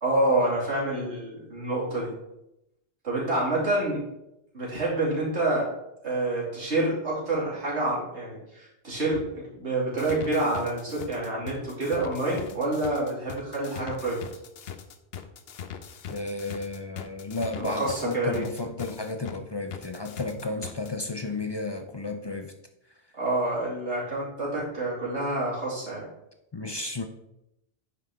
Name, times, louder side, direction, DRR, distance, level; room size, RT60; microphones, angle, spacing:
voice 1, 0.0-2.1 3.0-4.0 4.5-5.7 6.0-9.2 9.5-14.2 17.6-18.4 23.1-26.1, right 2 dB, 80° right, -5 dB, 3.0 m, -27 dB
sound 1, 10.0-19.4 19.7-20.9, left 8 dB, 65° left, 0.9 m, -41 dB
voice 2, 16.1-22.5 26.5-27.1, left 3 dB, 35° left, 6 dB, 0.4 m, -33 dB
9.6 x 5.8 x 3.6 m, 0.86 s
omnidirectional pair, 1.1 m